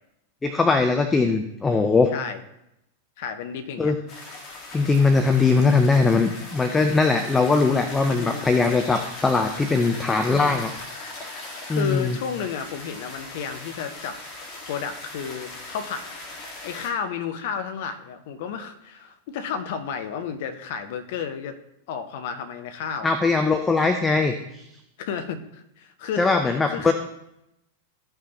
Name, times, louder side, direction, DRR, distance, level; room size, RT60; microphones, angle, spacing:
voice 1, 0.4-2.1 3.8-4.0 4.7-10.7 11.7-12.2 23.0-24.7 26.2-26.9, left 4 dB, 15° left, 6 dB, 0.6 m, -20 dB
voice 2, 3.2-3.9 8.1-8.5 10.3-10.7 11.7-14.2 14.7-16.1 16.6-21.6 21.9-23.1 25.0-26.9, left 7 dB, 50° left, 8 dB, 0.8 m, -32 dB
sound 1, 4.1-16.9, left 2 dB, 35° left, 1.7 m, -39 dB
14.0 x 5.6 x 2.9 m, 0.84 s
figure-of-eight pair, 90°, 0 cm